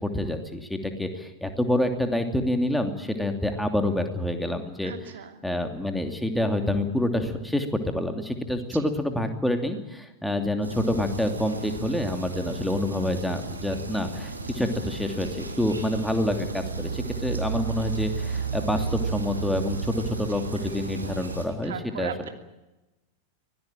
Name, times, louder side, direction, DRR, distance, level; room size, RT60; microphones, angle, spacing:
voice 1, 0.0-4.9 5.4-22.1, left 1 dB, 5° left, 6 dB, 2.8 m, -27 dB
voice 2, 4.8-5.4 12.5-12.7 19.9-20.0 20.3-20.4 21.0-22.3, right 9 dB, 60° right, 6 dB, 2.8 m, -40 dB
sound 1, 10.6-21.5, right 4 dB, 80° right, 3.6 m, -33 dB
24.5 x 18.0 x 9.1 m, 1.0 s
figure-of-eight pair, 90°, 0 cm